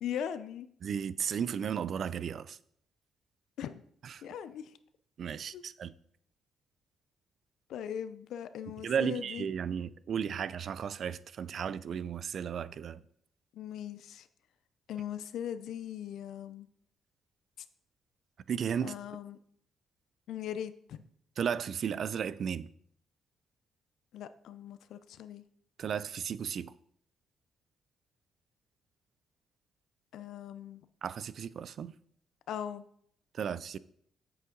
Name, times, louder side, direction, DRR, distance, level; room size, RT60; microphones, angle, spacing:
voice 1, 0.0-0.7 3.6-3.8 4.2-4.8 5.5-5.6 7.7-9.5 13.5-14.3 14.9-16.7 17.6-17.7 18.8-19.4 20.3-21.0 24.1-25.4 30.1-30.8 32.5-32.8, left 9 dB, 75° left, 0.6 m, -39 dB
voice 2, 0.8-2.6 4.0-4.2 5.2-5.9 8.8-13.0 18.5-18.9 21.4-22.7 25.8-26.7 31.0-31.9 33.3-33.8, right 7 dB, 60° right, 0.4 m, -34 dB
8.2 x 7.3 x 3.9 m
cardioid pair, 90°, 0 cm